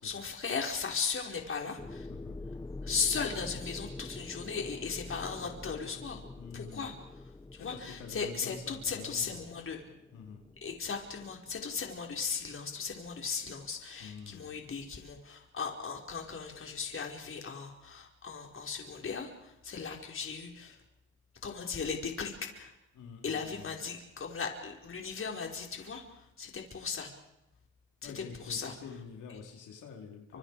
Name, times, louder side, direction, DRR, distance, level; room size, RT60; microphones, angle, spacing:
voice 1, 0.0-2.1 2.8-6.2 6.5-6.9 7.5-9.8 10.6-20.8 21.4-22.7 23.2-27.1 28.0-28.7 30.3-30.4, left 5 dB, 45° left, 2 dB, 5.1 m, -37 dB
sound 1, 1.8-11.5, left 2 dB, 15° left, 1.1 m, -46 dB
voice 2, 2.1-2.4 6.4-6.9 7.6-9.4 10.1-10.4 14.0-14.5 22.9-23.8 28.0-30.4, left 6 dB, 85° left, 0 dB, 4.7 m, -47 dB
29.5 x 26.5 x 5.1 m, 0.91 s
cardioid pair, 90°, 30 cm